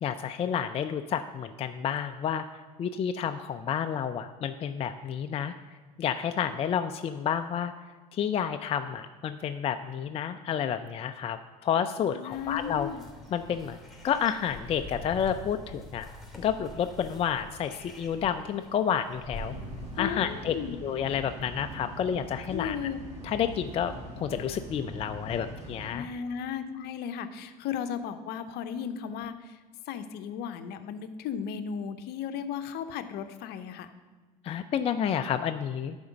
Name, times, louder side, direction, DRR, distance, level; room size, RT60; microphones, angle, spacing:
voice 1, 0.0-2.5 2.8-5.5 6.0-7.7 8.1-12.9 13.3-13.8 14.0-16.1 16.4-19.6 20.0-20.5 20.8-22.8 23.2-26.1 34.4-36.0, left 8 dB, 30° left, 8 dB, 0.4 m, -30 dB
voice 2, 12.1-13.0 20.0-20.8 22.5-23.0 25.9-29.6 29.9-33.9, left 8 dB, 50° left, 10 dB, 0.7 m, -35 dB
sound 1, 12.3-20.0, left 1 dB, ahead, 2.6 m, -45 dB
sound 2, 19.3-25.9, equal, 75° right, 2.4 m, -42 dB
11.0 x 4.4 x 6.0 m, 1.4 s
hypercardioid pair, 70°, 21 cm